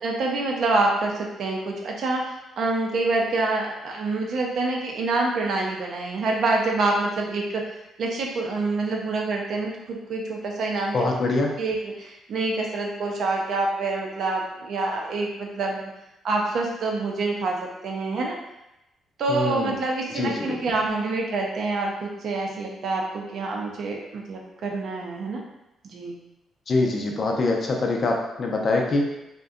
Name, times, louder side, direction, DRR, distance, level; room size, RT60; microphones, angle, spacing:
voice 1, 0.0-7.6 8.0-11.0 11.6-15.8 16.2-18.4 19.2-25.4 25.8-26.2, right 3 dB, 65° right, 0 dB, 0.5 m, -26 dB
voice 2, 10.9-11.5 19.3-19.7 20.1-20.6 26.7-29.1, left 2 dB, 45° left, 1 dB, 0.5 m, -24 dB
2.6 x 2.2 x 2.4 m, 0.90 s
cardioid pair, 90°, 0 cm